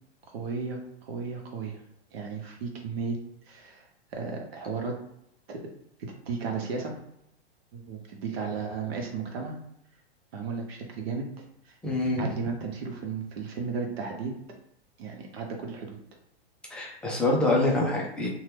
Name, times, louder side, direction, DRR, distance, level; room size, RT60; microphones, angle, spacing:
voice 1, 0.3-1.8 2.1-3.2 3.5-5.0 5.5-5.6 6.0-6.9 7.7-9.6 10.3-11.3 11.6-11.7 12.2-14.3 15.0-16.0, right 5 dB, 65° right, 2 dB, 1.0 m, -34 dB
voice 2, 11.8-12.3 16.7-18.3, left 2 dB, 5° left, -3 dB, 0.3 m, -25 dB
2.8 x 2.2 x 3.3 m, 0.77 s
hypercardioid pair, 130°, 33 cm